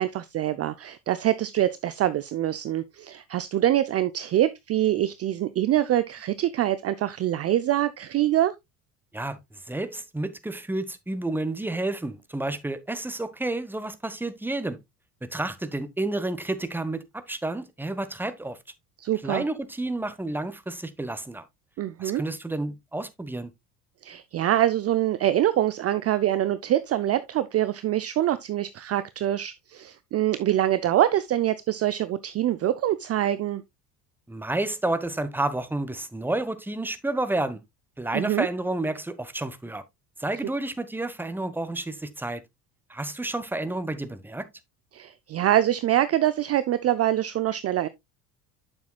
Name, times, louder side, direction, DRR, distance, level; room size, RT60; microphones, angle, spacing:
voice 1, 0.0-8.5 19.0-19.4 21.8-22.2 24.0-33.6 38.1-38.5 44.9-47.9, right 12 dB, 30° right, 0.5 m, -24 dB
voice 2, 9.1-14.8 15.3-18.6 19.2-21.4 22.0-23.5 34.3-37.6 38.0-39.8 40.2-42.4 42.9-44.5, right 2 dB, 5° right, 1.0 m, -30 dB
8.9 x 7.0 x 2.3 m
hypercardioid pair, 75°, 47 cm